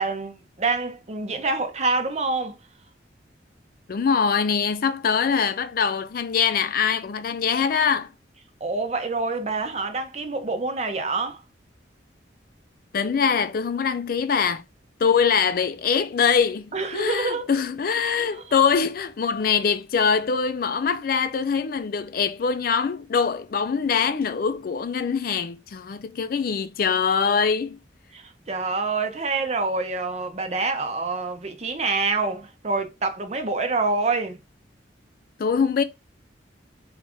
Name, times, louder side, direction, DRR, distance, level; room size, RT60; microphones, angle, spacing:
voice 1, 0.0-2.6 8.6-11.4 16.7-17.4 18.2-18.5 28.1-34.4, right 3 dB, 35° right, 0.6 m, -26 dB
voice 2, 3.9-8.1 12.9-14.6 15.0-27.8 35.4-35.8, left 6 dB, 50° left, 0.4 m, -23 dB
4.0 x 2.5 x 3.4 m
head